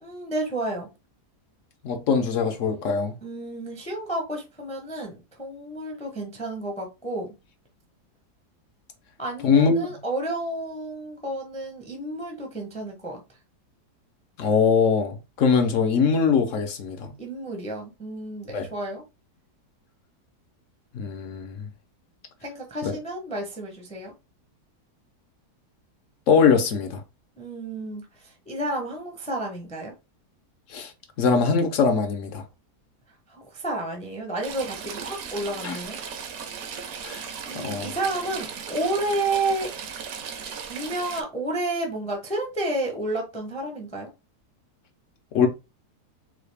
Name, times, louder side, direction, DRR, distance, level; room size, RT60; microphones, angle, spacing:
voice 1, 0.0-0.9 3.2-7.3 9.2-13.2 17.2-19.0 22.4-24.1 27.4-29.9 33.3-36.0 37.4-39.7 40.7-44.1, right 2 dB, 5° left, 0.5 m, -31 dB
voice 2, 1.8-3.1 9.4-9.9 14.4-17.1 18.5-18.7 20.9-21.7 22.8-22.9 26.3-27.0 30.7-30.9 31.2-32.4 35.6-35.8 37.0-37.2 37.5-37.9 45.3-45.5, left 5 dB, 60° left, 0.9 m, -22 dB
Stream / Trickle dribble, 34.4-41.2, right 7 dB, 65° right, 1.0 m, -36 dB
4.0 x 2.3 x 3.3 m
omnidirectional pair, 1.8 m